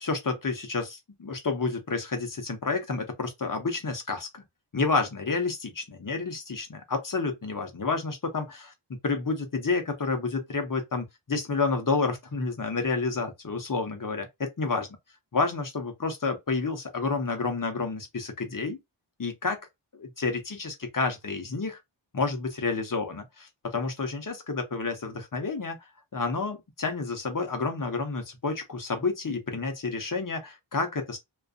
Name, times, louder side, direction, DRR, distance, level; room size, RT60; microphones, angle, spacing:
voice 1, 0.0-4.4 4.7-8.7 9.0-14.9 15.3-18.8 19.2-19.6 19.9-21.8 22.1-23.2 23.6-25.8 26.1-31.2, left 4 dB, 40° left, 0.8 m, -30 dB
2.5 x 2.4 x 2.4 m
wide cardioid pair, 50°, 48 cm